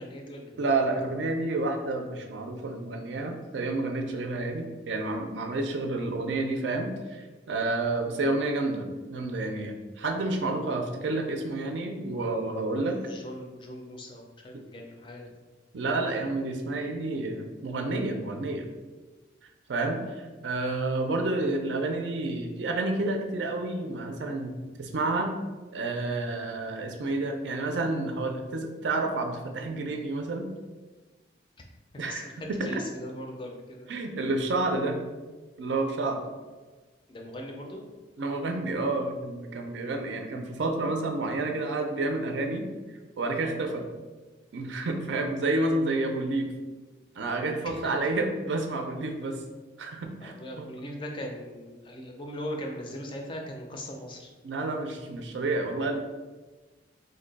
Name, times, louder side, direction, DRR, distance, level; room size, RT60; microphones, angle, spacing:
voice 1, 0.0-0.7 13.0-15.2 31.9-33.9 37.1-37.9 47.7-47.8 50.2-54.3, equal, 25° left, 1 dB, 0.4 m, -39 dB
voice 2, 0.6-13.0 15.7-18.6 19.7-25.3 25.7-30.5 32.0-32.8 33.9-35.0 35.6-36.2 38.2-42.7 43.2-43.8 44.5-46.5 47.2-49.4 49.8-50.7 54.4-56.0, right 2 dB, 80° right, 4 dB, 0.4 m, -30 dB
2.6 x 2.2 x 3.9 m, 1.3 s
head